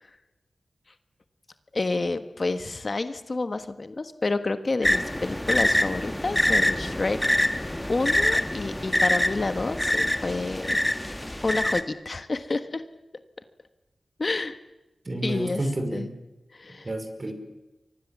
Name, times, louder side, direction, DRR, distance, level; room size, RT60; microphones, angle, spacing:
voice 1, 1.7-7.2 7.5-10.8 11.4-12.8 14.2-14.6 15.2-15.6 15.9-16.1 16.5-16.9, left 3 dB, 45° left, 10 dB, 1.4 m, -29 dB
sound 1, 4.8-11.8, left 1 dB, 10° left, 1.7 m, -25 dB
voice 2, 15.0-16.1 16.8-17.3, right 1 dB, 35° right, 7 dB, 5.1 m, -30 dB
29.5 x 24.0 x 7.4 m, 1.1 s
wide cardioid pair, 75°, 0 cm